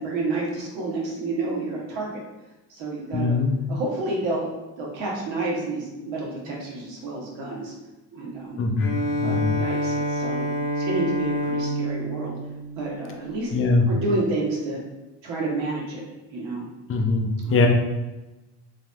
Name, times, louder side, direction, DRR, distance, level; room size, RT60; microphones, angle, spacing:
voice 1, 0.0-2.2 2.7-3.4 3.7-4.4 4.8-7.7 8.1-8.6 9.2-10.5 10.8-12.4 12.8-13.5 13.9-14.8 15.2-16.0 16.3-16.7 17.4-17.7, right 2 dB, 80° right, -3 dB, 1.1 m, -29 dB
voice 2, 3.1-3.5 8.6-8.9 9.2-9.5 13.5-13.8 16.9-17.7, left 3 dB, 30° left, 2 dB, 0.5 m, -21 dB
Bowed string instrument, 8.8-13.5, equal, 85° left, 0.7 m, -28 dB
3.2 x 2.6 x 2.2 m, 1.1 s
supercardioid pair, 85°, 44 cm